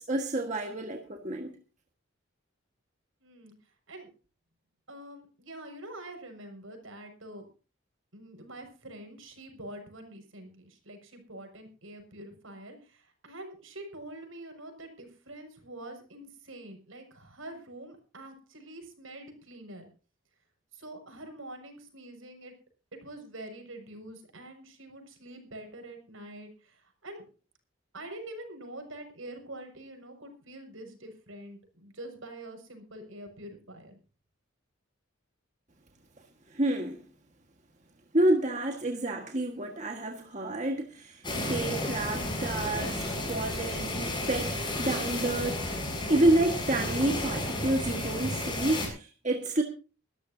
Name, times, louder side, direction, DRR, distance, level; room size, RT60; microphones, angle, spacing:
voice 1, 0.0-1.5 36.5-37.1 38.1-49.6, right 1 dB, 35° right, 1.6 m, -29 dB
voice 2, 3.2-3.5 3.9-4.1 4.9-7.4 8.1-19.8 20.7-22.5 23.0-27.2 27.9-34.0, right 1 dB, 70° right, 6.3 m, -45 dB
sound 1, 41.2-48.9, left 1 dB, 20° left, 7.0 m, -32 dB
23.0 x 13.5 x 2.8 m
head